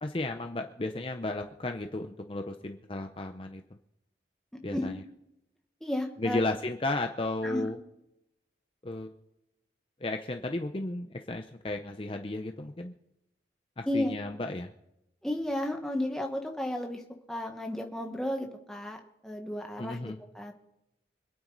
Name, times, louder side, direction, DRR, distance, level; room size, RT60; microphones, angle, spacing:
voice 1, 0.0-3.6 4.6-5.0 6.2-7.8 8.8-9.1 10.0-12.9 13.8-14.7 19.8-20.2, left 2 dB, 30° left, 5 dB, 0.6 m, -34 dB
voice 2, 5.8-6.4 7.4-7.7 13.9-14.1 15.2-17.0 17.3-19.0 19.2-20.5, left 1 dB, 5° left, 2 dB, 1.4 m, -33 dB
26.0 x 9.2 x 4.0 m, 0.85 s
head